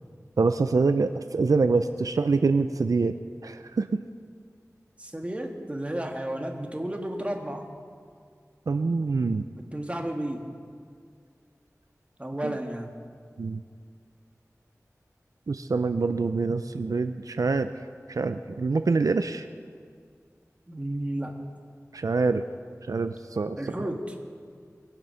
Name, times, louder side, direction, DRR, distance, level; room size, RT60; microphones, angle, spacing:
voice 1, 0.4-3.2 3.4-4.0 8.7-9.5 12.4-12.5 13.4-13.6 15.5-17.7 18.1-19.5 21.9-22.4 22.9-23.9, right 4 dB, 85° right, 9 dB, 0.5 m, -25 dB
voice 2, 5.0-7.7 9.7-10.5 12.2-12.9 20.7-21.4 23.6-24.2, right 1 dB, 20° right, 2 dB, 1.7 m, -32 dB
22.0 x 7.6 x 5.7 m, 2.1 s
wide cardioid pair, 50°, 6 cm